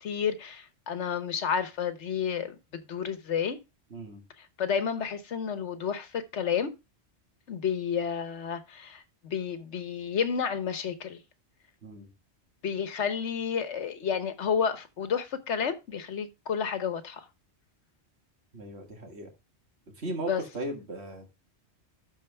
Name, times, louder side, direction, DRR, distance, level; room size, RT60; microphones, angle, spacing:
voice 1, 0.0-3.6 4.6-6.7 7.5-11.2 12.6-17.2 20.2-20.4, left 7 dB, 85° left, 1.3 m, -31 dB
voice 2, 18.5-19.3 20.0-20.3 20.5-21.3, right 1 dB, 70° right, 2.1 m, -37 dB
12.5 x 4.6 x 3.4 m
omnidirectional pair, 1.2 m